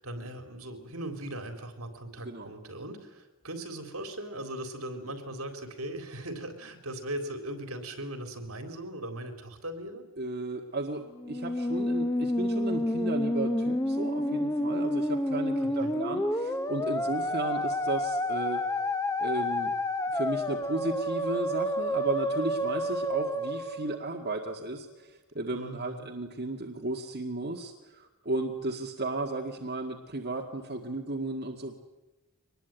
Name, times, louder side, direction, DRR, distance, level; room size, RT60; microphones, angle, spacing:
voice 1, 0.0-10.1 15.6-15.9 25.5-26.1, right 1 dB, 75° right, 6 dB, 3.9 m, -39 dB
voice 2, 10.2-18.6 19.2-19.7 20.1-31.8, right 2 dB, 45° right, 1 dB, 1.9 m, -34 dB
Musical instrument, 11.2-24.5, left 1 dB, 15° left, 0.8 m, -29 dB
24.0 x 20.5 x 9.1 m, 1.1 s
head